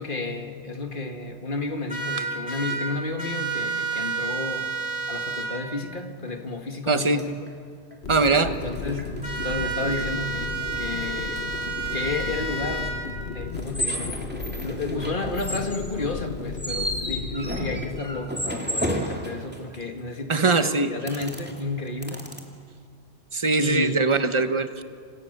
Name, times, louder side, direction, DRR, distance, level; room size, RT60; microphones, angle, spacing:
voice 1, 0.0-4.7 5.1-7.4 8.4-11.5 11.9-12.9 13.3-14.2 14.6-22.2 23.6-24.0, left 2 dB, 50° left, 5 dB, 2.0 m, -32 dB
sound 1, 1.9-2.8 3.2-5.5 9.2-12.9, right 4 dB, 50° right, 8.1 m, -30 dB
sound 2, 6.3-6.4 7.0-7.5 7.9-8.0 8.3-10.1 10.4-12.6 13.5-20.0 21.1-22.4, equal, 10° right, 2.7 m, -33 dB
voice 2, 6.9-7.2 8.1-8.5 20.3-20.9 23.3-24.8, right 3 dB, 30° right, 9 dB, 1.1 m, -21 dB
sound 3, 8.0-18.0, left 4 dB, 70° left, 1.6 m, -34 dB
29.5 x 27.0 x 6.7 m, 2.2 s
omnidirectional pair, 1.1 m